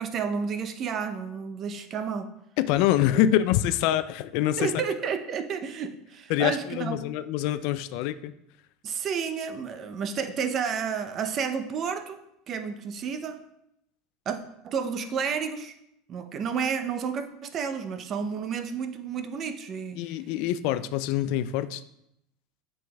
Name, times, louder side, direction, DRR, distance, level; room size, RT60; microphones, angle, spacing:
voice 1, 0.0-2.3 4.6-7.0 8.8-12.2 12.5-13.4 14.3-14.4 14.6-15.7 16.1-20.0, right 6 dB, 40° right, 9 dB, 0.6 m, -31 dB
voice 2, 2.6-4.7 6.3-8.3 20.0-21.8, left 12 dB, 65° left, 13 dB, 0.3 m, -25 dB
8.3 x 5.5 x 2.3 m, 0.80 s
hypercardioid pair, 95°, 0 cm